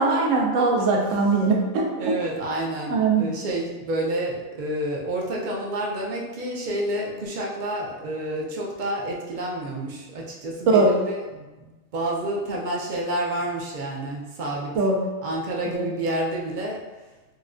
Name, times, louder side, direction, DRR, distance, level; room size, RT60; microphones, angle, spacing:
voice 1, 0.0-2.2 2.9-3.3 10.7-11.0 14.7-15.0 15.7-15.9, right 3 dB, 80° right, 0 dB, 1.0 m, -21 dB
voice 2, 2.0-14.8 15.2-16.9, right 1 dB, 55° right, -2 dB, 0.6 m, -29 dB
4.1 x 2.2 x 2.4 m, 1.1 s
omnidirectional pair, 1.3 m